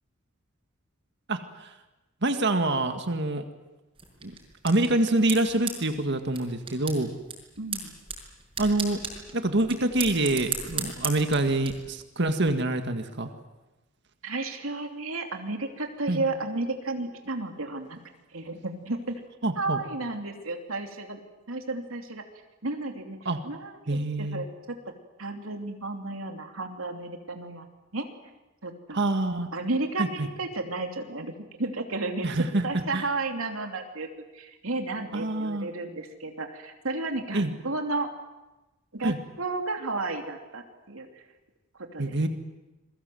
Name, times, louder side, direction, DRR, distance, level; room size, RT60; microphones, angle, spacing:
voice 1, 1.3-1.7 2.2-3.4 4.2-4.3 4.6-7.1 8.6-9.0 9.3-13.3 16.1-16.2 19.4-19.8 23.3-23.4 23.9-24.5 28.9-29.5 30.0-30.3 32.2-33.1 35.1-35.7 37.3-37.6 39.0-39.2 42.0-42.3, right 2 dB, 55° right, 7 dB, 1.9 m, -26 dB
sound 1, 4.0-11.7, right 5 dB, 25° right, 5.8 m, -37 dB
voice 2, 7.6-8.0 14.2-18.0 18.3-19.2 19.6-21.2 21.5-22.2 22.6-23.2 23.4-24.8 25.2-27.7 27.9-28.1 28.6-29.0 29.5-31.3 31.6-34.1 34.3-38.1 38.9-41.1 41.9-42.0, right 2 dB, 80° right, 4 dB, 2.9 m, -32 dB
28.0 x 22.0 x 7.8 m, 1.0 s
head